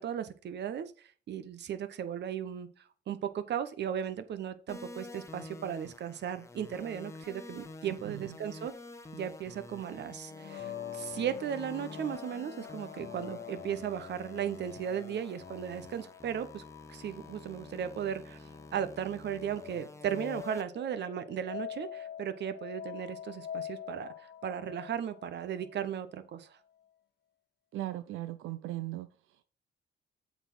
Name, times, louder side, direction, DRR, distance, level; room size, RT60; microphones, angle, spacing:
voice 1, 0.0-2.7 3.1-8.7 9.1-16.6 16.9-26.6, right 9 dB, 60° right, 0.9 m, -36 dB
sound 1, 4.7-20.6, left 2 dB, 15° left, 0.9 m, -49 dB
voice 2, 7.9-8.4 27.7-29.1, right 15 dB, 85° right, 0.5 m, -38 dB
sound 2, 10.3-25.9, left 10 dB, 55° left, 0.7 m, -46 dB
8.0 x 4.2 x 5.5 m
cardioid pair, 90°, 20 cm